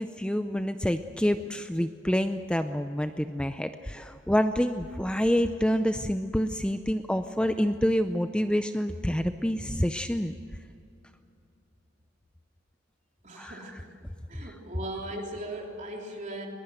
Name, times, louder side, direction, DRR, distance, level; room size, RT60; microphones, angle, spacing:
voice 1, 0.0-10.3 13.4-13.6 14.4-14.5, equal, 5° left, 8 dB, 0.5 m, -27 dB
voice 2, 13.2-14.0 14.3-16.5, right 1 dB, 40° right, 1 dB, 3.5 m, -38 dB
22.0 x 21.0 x 7.9 m, 2.6 s
head